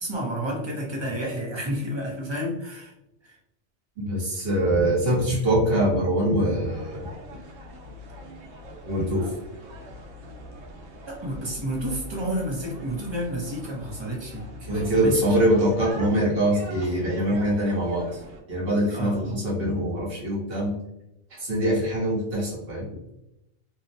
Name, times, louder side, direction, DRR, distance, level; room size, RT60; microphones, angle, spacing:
voice 1, 0.0-2.9 3.2-3.3 11.1-15.2 18.9-19.4, right 1 dB, 30° right, -2 dB, 0.5 m, -30 dB
voice 2, 4.0-7.0 8.9-9.3 14.6-18.1 18.5-20.8 21.3-22.9, right 1 dB, 60° right, -4 dB, 1.1 m, -23 dB
sound 1, 6.6-18.4, equal, 85° right, 1.0 m, -43 dB
2.7 x 2.0 x 2.6 m, 0.87 s
omnidirectional pair, 1.2 m